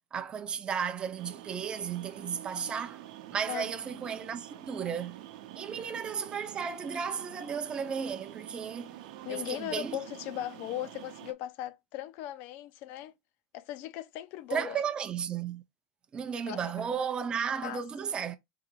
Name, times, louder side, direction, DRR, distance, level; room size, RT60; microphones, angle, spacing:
voice 1, 0.1-3.0 3.3-5.2 5.6-9.0 9.3-10.0 14.5-15.6 16.1-18.4, right 7 dB, 20° right, 0.6 m, -34 dB
sound 1, 1.2-11.3, right 13 dB, 75° right, 0.7 m, -47 dB
voice 2, 9.2-13.1 13.5-14.8 16.5-17.2 17.6-17.8, left 13 dB, 55° left, 0.5 m, -38 dB
3.8 x 3.0 x 4.5 m
supercardioid pair, 140°, 4 cm